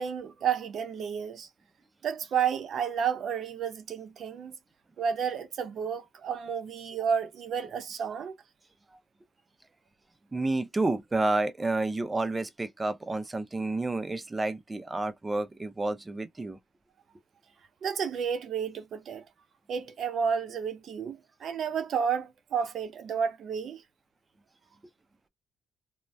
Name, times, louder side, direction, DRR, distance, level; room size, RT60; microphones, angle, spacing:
voice 1, 0.0-1.5 2.0-4.5 5.0-8.4 17.8-19.2 19.7-23.8, right 7 dB, 65° right, 0.6 m, -31 dB
voice 2, 10.3-16.6, right 2 dB, 20° right, 0.5 m, -30 dB
2.5 x 2.1 x 3.3 m
cardioid pair, 90°, 0 cm